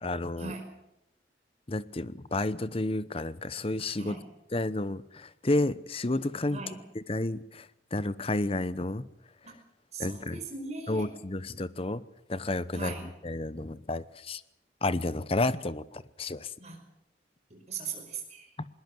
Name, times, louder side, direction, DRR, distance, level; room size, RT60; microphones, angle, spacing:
voice 1, 0.0-0.6 1.7-4.2 4.5-6.6 6.9-9.0 10.0-10.4 10.9-12.0 12.3-14.4 14.8-16.5 18.6-18.7, left 2 dB, 30° left, 0.8 m, -31 dB
voice 2, 9.9-11.0 12.7-13.1 16.6-16.8 17.5-18.5, right 4 dB, 40° right, 5.2 m, -39 dB
21.5 x 20.0 x 7.8 m
head